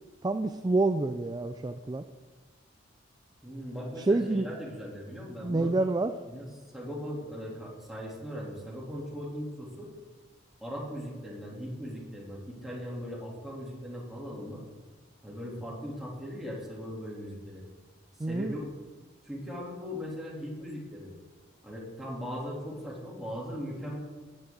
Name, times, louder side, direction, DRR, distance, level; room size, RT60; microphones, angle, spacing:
voice 1, 0.2-2.0 4.1-4.5 5.4-6.1 18.2-18.5, right 2 dB, 20° right, 9 dB, 0.4 m, -27 dB
voice 2, 3.4-5.7 6.3-6.5 6.7-9.9 10.6-14.6 15.2-17.6 18.3-18.6 19.2-21.1 21.6-24.0, equal, ahead, -5 dB, 3.2 m, -39 dB
15.5 x 9.7 x 3.9 m, 1.4 s
head